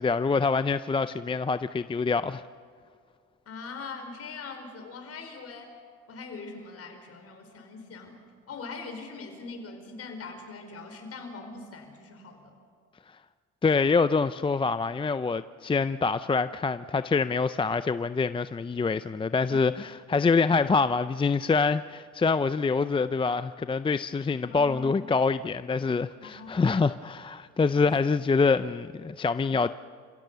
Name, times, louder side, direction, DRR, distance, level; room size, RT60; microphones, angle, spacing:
voice 1, 0.0-2.4 13.6-29.7, left 4 dB, 20° left, 0.5 m, -25 dB
voice 2, 3.4-5.7 6.1-8.2 8.5-12.5 19.5-19.7 24.4-25.0 26.2-26.8 27.7-27.9, left 4 dB, 55° left, 4.9 m, -42 dB
28.5 x 16.5 x 6.9 m
supercardioid pair, 80°, 29 cm